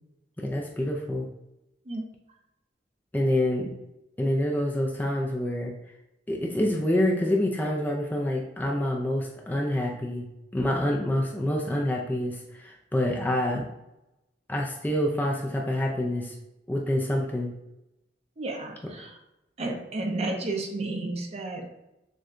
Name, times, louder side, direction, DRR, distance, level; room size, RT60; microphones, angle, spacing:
voice 1, 0.4-1.3 3.1-3.7 4.2-5.7 6.3-10.3 10.5-13.7 14.5-16.3 16.7-17.5 19.0-19.1, left 1 dB, 10° left, -1 dB, 0.4 m, -27 dB
voice 2, 18.4-19.2 19.6-21.7, right 2 dB, 35° right, 2 dB, 0.6 m, -32 dB
6.3 x 2.2 x 2.5 m, 0.92 s
head